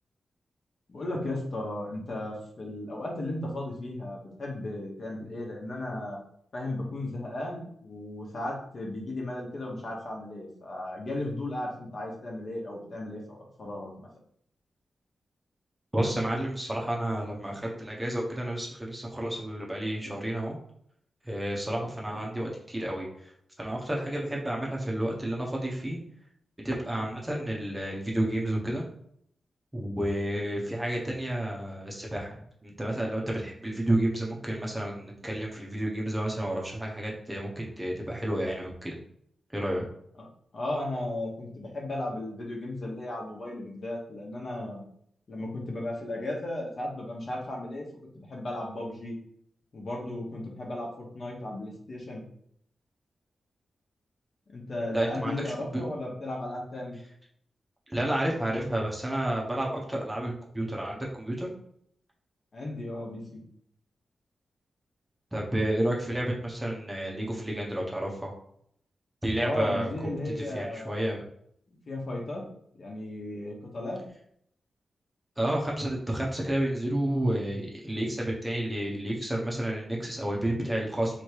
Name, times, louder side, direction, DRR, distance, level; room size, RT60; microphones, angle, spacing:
voice 1, 0.9-6.2 6.5-14.1 22.1-22.2 40.2-40.3 40.5-44.8 45.3-47.9 48.1-49.2 49.7-52.2 54.5-57.0 62.5-63.4 69.4-71.2 71.7-72.4 72.8-74.0, left 1 dB, 50° left, -2 dB, 1.2 m, -35 dB
voice 2, 15.9-20.6 21.2-23.3 23.6-26.0 26.6-28.8 29.7-38.9 39.5-39.8 54.9-55.8 57.9-61.5 65.3-68.3 69.2-69.9 70.5-71.2 75.4-81.2, right 1 dB, 10° right, -2 dB, 0.8 m, -30 dB
3.4 x 3.2 x 4.6 m, 0.68 s
wide cardioid pair, 130°, 0 cm